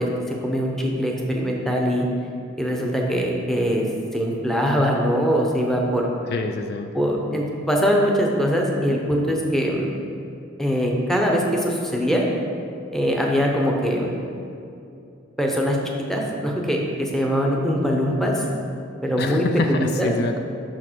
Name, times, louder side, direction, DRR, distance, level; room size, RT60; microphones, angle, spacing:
voice 1, 0.0-2.1 2.6-3.9 4.1-6.1 6.9-9.9 10.6-12.2 12.9-14.1 15.4-15.8 16.1-18.4 19.0-20.1, equal, ahead, -1 dB, 0.7 m, -22 dB
voice 2, 6.3-6.9 19.2-20.4, left 4 dB, 50° left, 5 dB, 0.3 m, -26 dB
6.4 x 5.8 x 4.5 m, 2.6 s
head